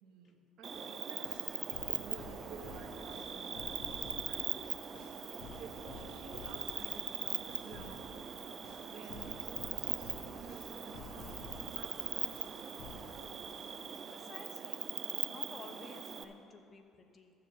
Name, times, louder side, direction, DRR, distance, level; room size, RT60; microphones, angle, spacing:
voice 1, 0.0-1.6 1.9-4.5 5.6-8.2 8.9-11.4 11.7-13.7, right 5 dB, 70° right, 2 dB, 1.4 m, -53 dB
Cricket, 0.6-16.2, right 6 dB, 45° right, 0.7 m, -41 dB
sound 1, 0.7-0.8 1.3-4.5 4.9-8.2 8.6-11.9 12.3-13.2, left 4 dB, 75° left, 0.7 m, -52 dB
voice 2, 4.1-4.7 5.4-5.5 6.2-6.5 14.1-14.8 15.1-17.3, left 3 dB, 40° left, 6 dB, 1.0 m, -54 dB
14.0 x 4.8 x 6.9 m, 2.6 s
supercardioid pair, 75°, 0 cm